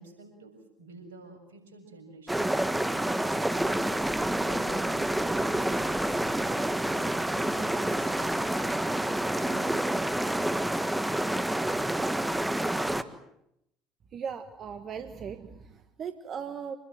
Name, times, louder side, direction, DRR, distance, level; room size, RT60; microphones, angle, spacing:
voice 1, 0.0-5.9 9.4-9.9, right 3 dB, 80° right, 3 dB, 7.3 m, -50 dB
sound 1, 2.3-13.0, right 1 dB, 10° right, 1.6 m, -28 dB
voice 2, 14.1-16.8, right 7 dB, 45° right, 9 dB, 1.4 m, -38 dB
27.0 x 20.5 x 7.9 m, 0.80 s
hypercardioid pair, 65°, 0 cm